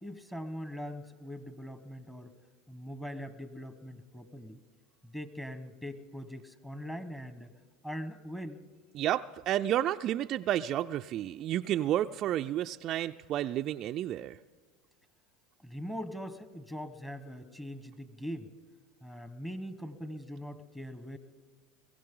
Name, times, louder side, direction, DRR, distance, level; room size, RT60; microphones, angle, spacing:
voice 1, 0.0-2.3 2.7-4.6 5.0-7.5 7.8-8.6 15.6-18.5 19.0-21.2, equal, 10° left, 10 dB, 1.2 m, -41 dB
voice 2, 8.9-14.4, right 12 dB, 50° right, 7 dB, 0.4 m, -31 dB
22.5 x 15.5 x 3.8 m, 1.5 s
hypercardioid pair, 95°, 0 cm